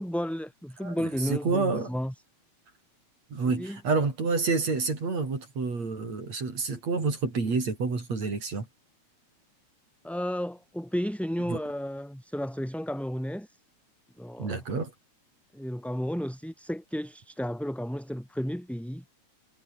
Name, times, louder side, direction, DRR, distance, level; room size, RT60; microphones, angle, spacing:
voice 1, 0.0-2.1 3.4-3.8 10.0-13.6 14.2-14.6 15.5-19.0, equal, ahead, 5.6 m, -33 dB
voice 2, 1.2-1.9 3.3-8.7 11.5-11.6 14.4-14.9, right 4 dB, 60° right, 6.5 m, -28 dB
omnidirectional pair, 3.4 m